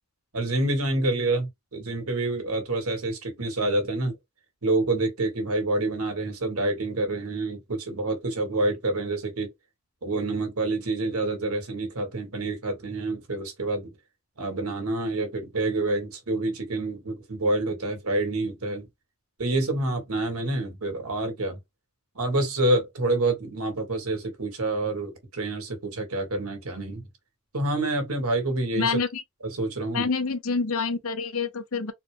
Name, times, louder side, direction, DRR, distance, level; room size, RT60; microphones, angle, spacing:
voice 1, 0.3-4.2 4.6-9.5 10.0-13.9 14.4-18.9 19.4-21.6 22.1-27.0 27.5-28.9 29.4-30.1, right 2 dB, 85° right, 1.5 m, -27 dB
voice 2, 28.8-29.2 29.9-31.9, left 4 dB, 75° left, 0.7 m, -27 dB
4.0 x 2.2 x 3.2 m
head